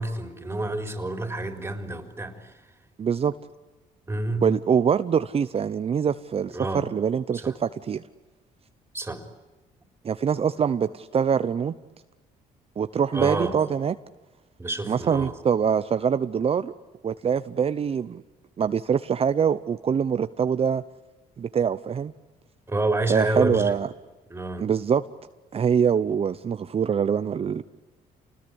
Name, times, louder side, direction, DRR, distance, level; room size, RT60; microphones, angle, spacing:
voice 1, 0.0-2.6 4.1-4.4 6.5-6.9 7.3-7.6 8.9-9.2 13.1-13.6 14.6-15.3 22.7-23.8 24.3-24.7, right 2 dB, 15° right, 6 dB, 4.1 m, -28 dB
voice 2, 3.0-3.3 4.4-8.0 10.0-11.7 12.8-13.9 14.9-16.7 17.0-18.2 18.6-20.8 21.4-22.1 23.1-23.9 24.6-25.0 25.5-27.6, right 7 dB, 40° right, 12 dB, 0.8 m, -24 dB
28.5 x 20.5 x 9.9 m, 1.2 s
cardioid pair, 95°, 15 cm